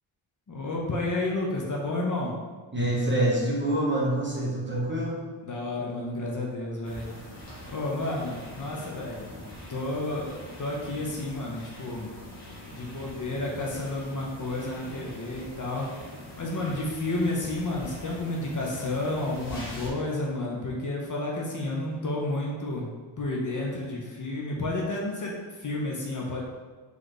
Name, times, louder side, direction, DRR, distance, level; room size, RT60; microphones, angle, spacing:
voice 1, 0.5-2.4 5.4-7.1 7.7-9.4 9.7-12.1 12.7-15.9 16.4-22.9 23.2-26.4, left 2 dB, 40° left, -3 dB, 0.7 m, -31 dB
voice 2, 2.7-5.2, right 1 dB, 25° right, -4 dB, 0.9 m, -26 dB
sound 1, 6.8-19.9, equal, 65° left, 1.5 m, -44 dB
4.0 x 3.2 x 3.2 m, 1.4 s
wide cardioid pair, 100°, 48 cm